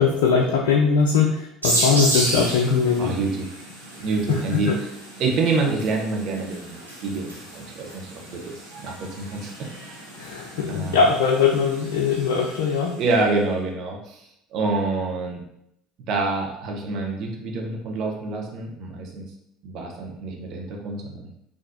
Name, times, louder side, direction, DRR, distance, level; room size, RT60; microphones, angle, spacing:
voice 1, 0.0-3.2 4.3-4.8 10.2-13.0, left 5 dB, 65° left, 1 dB, 0.3 m, -21 dB
sound 1, 1.6-13.0, right 1 dB, 90° right, 0.9 m, -32 dB
voice 2, 4.0-4.7 5.2-9.7 10.7-11.0 13.0-15.4 16.1-19.3 19.6-21.3, right 3 dB, 50° right, 0 dB, 0.8 m, -27 dB
3.8 x 2.5 x 2.7 m, 0.78 s
figure-of-eight pair, 65°, 0 cm